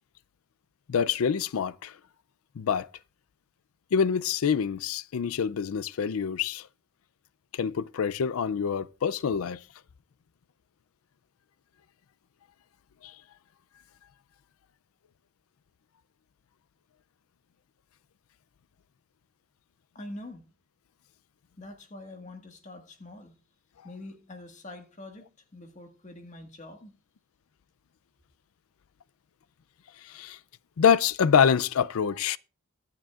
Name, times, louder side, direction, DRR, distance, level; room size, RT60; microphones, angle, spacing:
voice 1, 0.9-1.9 2.6-2.9 3.9-6.7 7.5-9.6 13.0-13.1 30.0-30.4 30.8-32.4, left 7 dB, 85° left, 0.4 m, -26 dB
voice 2, 19.9-20.4 21.6-23.4 23.8-26.9, left 2 dB, 35° left, 1.6 m, -45 dB
22.5 x 7.6 x 2.4 m
head